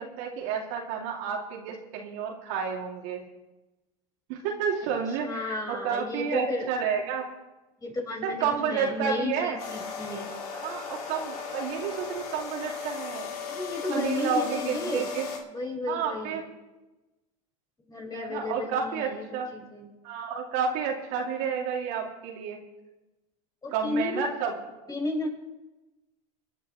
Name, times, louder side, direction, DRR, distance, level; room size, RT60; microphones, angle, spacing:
voice 1, 0.0-3.2 4.3-7.3 8.2-9.6 10.6-13.3 13.9-15.3 15.9-16.4 18.1-19.5 20.0-22.6 23.7-24.5, right 6 dB, 65° right, -1 dB, 2.6 m, -30 dB
voice 2, 5.1-6.7 7.8-10.3 13.5-15.1 15.5-16.4 17.9-19.3 19.5-19.9 23.6-24.3 24.9-25.3, left 2 dB, 20° left, -1 dB, 5.5 m, -33 dB
sound 1, 9.6-15.4, left 5 dB, 85° left, 2.3 m, -36 dB
26.0 x 10.0 x 3.1 m, 1.1 s
supercardioid pair, 100°, 19 cm